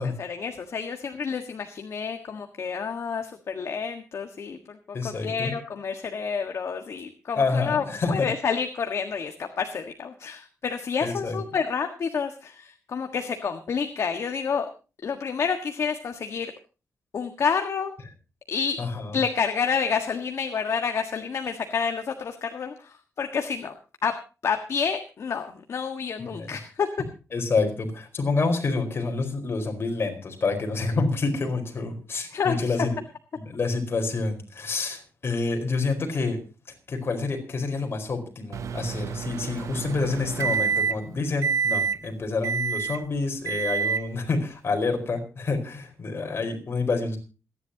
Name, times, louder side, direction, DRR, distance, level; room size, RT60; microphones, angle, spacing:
voice 1, 0.0-4.8 5.0-14.7 15.0-16.5 17.1-17.9 18.5-18.8 19.1-23.7 24.0-24.1 24.4-26.9 32.3-32.8, left 6 dB, 65° left, 5 dB, 1.6 m, -29 dB
voice 2, 4.9-5.6 7.4-8.3 11.0-11.4 18.8-19.2 26.3-26.6 27.3-32.9 33.4-36.4 36.9-47.2, left 3 dB, 50° left, 3 dB, 4.6 m, -28 dB
Microwave oven, 38.5-41.1 41.4-42.0 42.4-43.0 43.5-44.1, right 6 dB, 75° right, 0.7 m, -27 dB
27.5 x 11.0 x 2.9 m, 0.33 s
wide cardioid pair, 115°, 5 cm